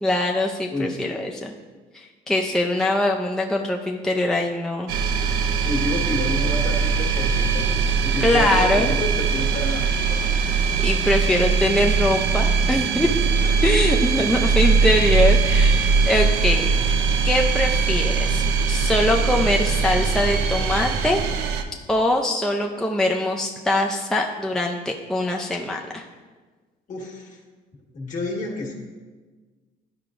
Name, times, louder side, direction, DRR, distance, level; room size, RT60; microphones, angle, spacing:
voice 1, 0.0-1.5 1.9-4.9 8.2-8.9 10.8-13.1 13.6-17.0 17.2-21.2 21.9-26.0, left 1 dB, 5° left, 1 dB, 0.4 m, -23 dB
voice 2, 0.7-1.4 5.0-5.3 5.6-7.8 8.0-10.2 13.1-13.2 13.4-13.7 26.9-27.4 27.9-28.8, left 2 dB, 50° left, -1 dB, 1.5 m, -30 dB
sound 1, 4.9-21.6, right 5 dB, 85° right, 0.5 m, -21 dB
11.0 x 4.7 x 2.5 m, 1.4 s
cardioid pair, 110°, 17 cm